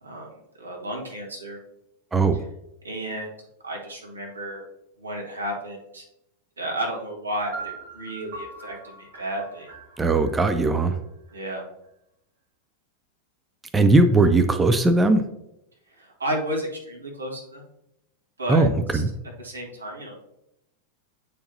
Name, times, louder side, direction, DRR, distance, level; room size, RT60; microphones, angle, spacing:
voice 1, 0.0-1.6 2.8-3.3 3.6-4.6 5.0-6.0 6.6-9.7 11.3-11.6 15.9-17.7 18.4-18.7 18.9-19.0 19.4-20.2, right 1 dB, 75° right, -1 dB, 1.5 m, -32 dB
voice 2, 2.1-2.4 10.0-11.0 13.7-15.2 18.5-19.1, right 2 dB, 15° right, 9 dB, 0.4 m, -19 dB
sound 1, 7.5-11.4, right 3 dB, 55° right, 2.4 m, -41 dB
8.5 x 4.6 x 2.7 m, 0.86 s
figure-of-eight pair, 90°, 0 cm